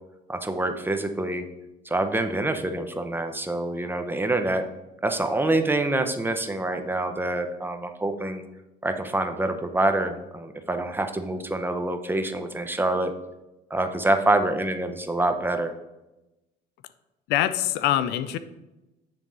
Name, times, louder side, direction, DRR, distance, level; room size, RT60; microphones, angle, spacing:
voice 1, 0.3-1.5 1.8-4.6 5.0-8.4 8.8-13.1 13.7-15.7, right 2 dB, 10° right, 7 dB, 0.8 m, -26 dB
voice 2, 17.3-18.4, left 12 dB, 85° left, 13 dB, 0.5 m, -24 dB
10.5 x 3.5 x 5.4 m, 0.99 s
cardioid pair, 110°, 17 cm